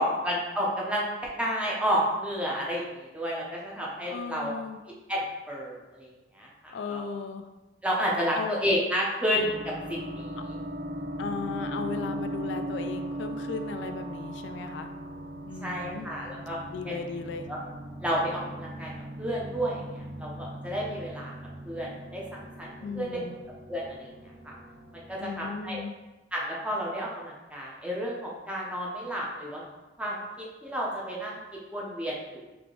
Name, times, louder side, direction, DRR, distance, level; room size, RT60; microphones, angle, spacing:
voice 1, 0.0-4.5 5.1-6.1 6.3-7.0 7.8-10.6 15.6-16.6 16.8-17.0 17.5-17.6 18.0-18.9 19.2-21.3 21.7-22.7 22.9-23.2 23.7-24.1 24.4-24.5 24.9-25.8 26.3-29.6 30.0-31.4 31.7-32.4, equal, 5° right, -4 dB, 0.7 m, -31 dB
voice 2, 4.0-4.8 6.7-7.5 8.4-8.6 11.2-14.9 15.5-16.1 16.7-17.5 22.8-23.4 25.2-25.9, left 5 dB, 70° left, 7 dB, 0.3 m, -36 dB
sound 1, 9.3-25.8, right 1 dB, 50° right, 0.7 m, -39 dB
3.6 x 3.4 x 3.7 m, 1.1 s
head